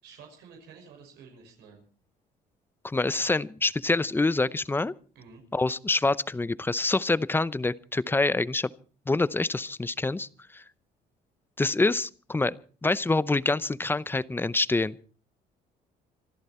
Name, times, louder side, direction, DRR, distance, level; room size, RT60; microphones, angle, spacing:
voice 1, 0.0-1.8 5.1-5.4, right 5 dB, 85° right, 2 dB, 5.9 m, -50 dB
voice 2, 2.8-4.9 5.5-8.7 9.1-10.6 11.6-12.6 12.8-15.0, left 3 dB, 15° left, 18 dB, 0.7 m, -26 dB
26.5 x 12.0 x 4.3 m, 0.39 s
cardioid pair, 110°, 17 cm